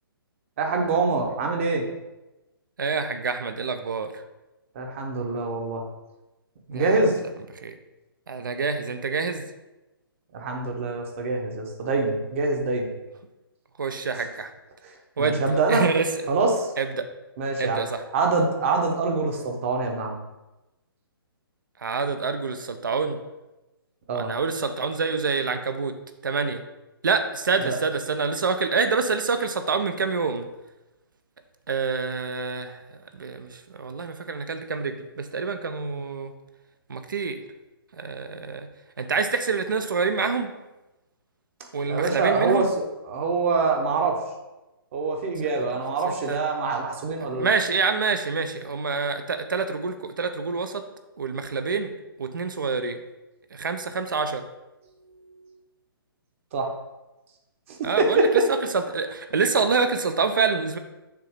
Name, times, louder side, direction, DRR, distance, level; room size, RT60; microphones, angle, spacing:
voice 1, 0.6-1.8 4.7-5.8 6.7-7.1 10.3-12.9 15.2-15.8 16.3-16.7 17.4-17.8 18.1-20.2 24.1-24.3 27.6-27.8 41.9-44.2 44.9-47.5 56.5-56.7 57.7-58.5, right 3 dB, 35° right, 2 dB, 0.9 m, -24 dB
voice 2, 2.8-4.1 6.7-7.0 7.6-7.7 8.3-9.4 13.8-14.5 15.2-16.3 16.8-17.0 17.6-18.0 21.8-23.2 24.1-25.9 26.2-26.6 27.0-30.5 31.7-32.8 33.1-36.3 36.9-37.4 38.0-38.7 39.0-40.5 41.7-42.7 46.3-46.4 47.2-50.8 51.2-51.9 52.2-53.0 53.5-54.4 57.8-58.3 58.7-60.8, right 4 dB, 60° right, 8 dB, 0.6 m, -26 dB
6.8 x 2.8 x 4.9 m, 1.0 s
figure-of-eight pair, 130°, 13 cm